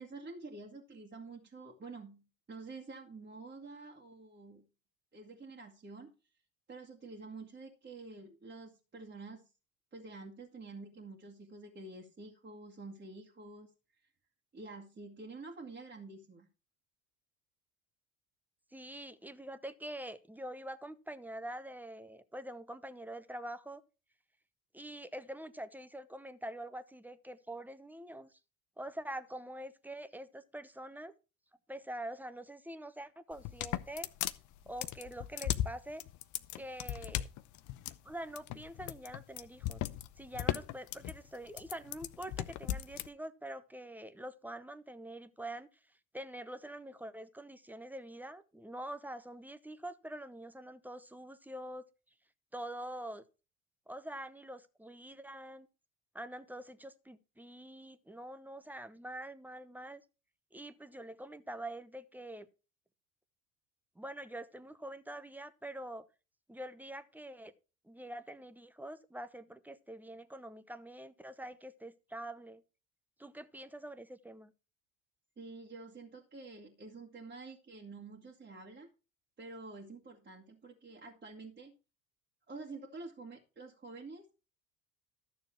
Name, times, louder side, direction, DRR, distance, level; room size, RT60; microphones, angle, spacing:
voice 1, 0.0-4.7 5.1-6.1 6.7-9.4 9.9-13.7 14.5-16.5 75.4-78.9 79.4-81.8 82.5-84.3, right 3 dB, 25° right, -3 dB, 1.9 m, -48 dB
voice 2, 18.7-23.8 24.7-28.4 28.8-31.1 31.7-34.1 34.7-36.0 36.5-37.3 38.0-39.8 40.2-51.8 52.5-53.2 53.9-55.7 56.1-60.0 60.5-62.5 64.0-66.1 66.5-67.5 67.8-72.6 73.2-74.5, right 1 dB, 5° right, 13 dB, 0.8 m, -45 dB
sound 1, 33.3-43.1, left 13 dB, 45° left, 0.7 m, -37 dB
13.0 x 6.9 x 4.5 m, 0.32 s
hypercardioid pair, 70°, 41 cm